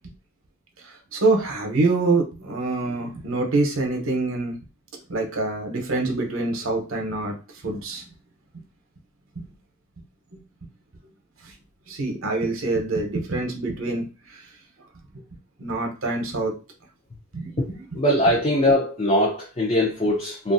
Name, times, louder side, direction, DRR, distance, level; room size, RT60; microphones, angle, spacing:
voice 1, 1.1-4.6 5.1-7.3 7.6-8.0 9.4-9.5 11.9-14.0 14.3-14.4 15.6-16.5 17.3-17.8, right 2 dB, 70° right, 2 dB, 0.8 m, -25 dB
voice 2, 18.0-20.5, left 1 dB, 30° left, -2 dB, 0.5 m, -21 dB
3.0 x 2.4 x 2.5 m, 0.33 s
head